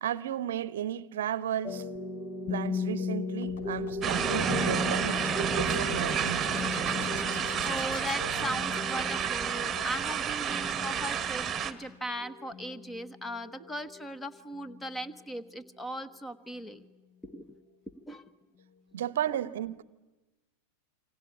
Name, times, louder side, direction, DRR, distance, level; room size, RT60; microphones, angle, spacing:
voice 1, 0.0-1.9 2.5-6.5 18.9-19.8, right 11 dB, 60° right, 0.9 m, -34 dB
sound 1, 1.6-15.1, left 4 dB, 40° left, 1.5 m, -37 dB
sound 2, 3.4-8.6, left 3 dB, 60° left, 3.1 m, -45 dB
sound 3, 4.0-11.7, right 8 dB, 20° right, 1.5 m, -30 dB
voice 2, 7.6-16.9 17.2-17.5 17.9-18.3, equal, 10° left, 1.2 m, -39 dB
28.0 x 25.0 x 8.5 m
figure-of-eight pair, 90°, 0 cm